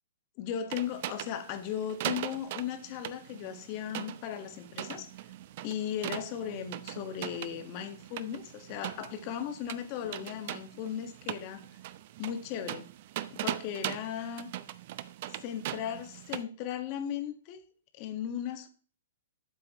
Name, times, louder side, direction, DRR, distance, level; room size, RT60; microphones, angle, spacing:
voice 1, 0.4-5.1 5.6-11.6 12.2-12.9 13.3-14.5 15.4-17.6 18.0-18.7, left 9 dB, 40° left, 1.6 m, -37 dB
sound 1, 0.7-16.4, right 13 dB, 50° right, 0.7 m, -41 dB
12.5 x 7.6 x 3.1 m
hypercardioid pair, 130°, 0 cm